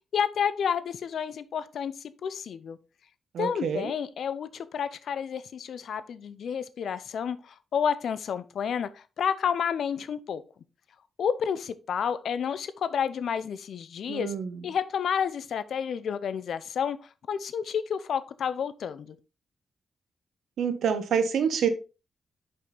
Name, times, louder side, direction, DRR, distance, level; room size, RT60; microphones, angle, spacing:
voice 1, 0.1-2.8 3.4-10.4 11.2-14.3 14.6-17.0 17.3-19.2, left 7 dB, 75° left, 0.6 m, -30 dB
voice 2, 3.3-3.9 14.1-14.6 20.6-21.7, right 7 dB, 80° right, 1.0 m, -27 dB
5.6 x 5.4 x 3.9 m
supercardioid pair, 55°, 0 cm